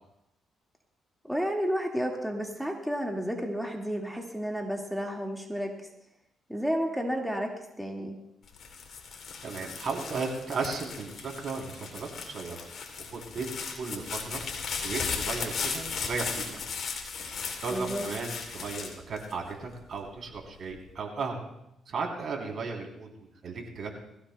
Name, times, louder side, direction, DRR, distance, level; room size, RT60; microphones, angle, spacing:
voice 1, 1.2-5.7 6.5-8.2 17.7-18.0, equal, ahead, 0 dB, 1.9 m, -31 dB
sound 1, 8.5-19.8 20.4-20.9, left 5 dB, 60° left, 2.8 m, -36 dB
voice 2, 9.4-12.6 13.1-14.4 14.8-16.6 17.6-21.5 21.9-23.9, right 4 dB, 55° right, 0 dB, 3.4 m, -35 dB
21.5 x 16.0 x 2.2 m, 0.83 s
cardioid pair, 90°, 0 cm